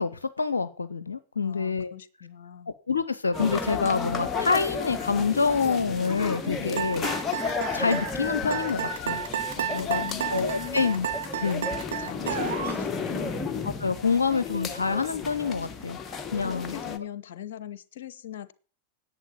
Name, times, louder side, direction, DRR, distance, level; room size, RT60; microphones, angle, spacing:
voice 1, 0.0-1.9 2.7-7.0 7.7-9.2 9.7-10.0 10.3-11.1 11.4-11.7 13.8-16.8, left 5 dB, 75° left, 15 dB, 0.6 m, -27 dB
voice 2, 1.4-2.7 6.6-7.0 9.6-10.9 12.0-13.4 16.3-18.5, left 11 dB, 55° left, 17 dB, 0.9 m, -40 dB
sound 1, 3.3-17.0, left 5 dB, 20° left, 1.4 m, -33 dB
sound 2, 6.8-12.8, right 9 dB, 65° right, 1.5 m, -31 dB
11.0 x 8.5 x 6.9 m, 0.38 s
figure-of-eight pair, 90°, 0 cm